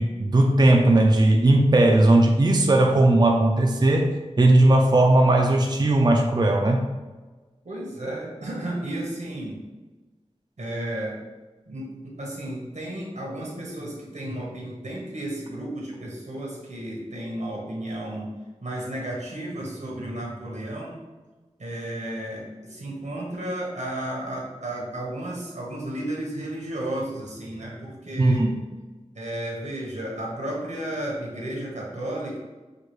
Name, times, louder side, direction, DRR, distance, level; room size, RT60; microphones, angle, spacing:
voice 1, 0.0-4.1 4.4-6.9 28.2-28.6, right 1 dB, 35° right, 1 dB, 0.4 m, -18 dB
voice 2, 7.6-9.6 10.6-11.2 11.7-18.3 18.6-21.0 21.6-28.4 29.1-32.4, right 1 dB, 90° right, -3 dB, 1.2 m, -33 dB
6.4 x 2.4 x 3.1 m, 1.2 s
wide cardioid pair, 65°, 12 cm